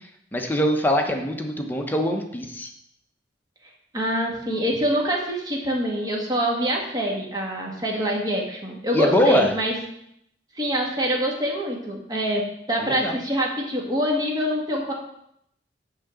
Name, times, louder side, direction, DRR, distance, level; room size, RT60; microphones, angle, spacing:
voice 1, 0.3-2.7 8.9-9.5 12.8-13.2, equal, 10° left, 2 dB, 1.0 m, -22 dB
voice 2, 3.9-9.7 10.5-14.9, equal, 25° right, -1 dB, 1.8 m, -25 dB
9.8 x 3.9 x 7.0 m, 0.74 s
head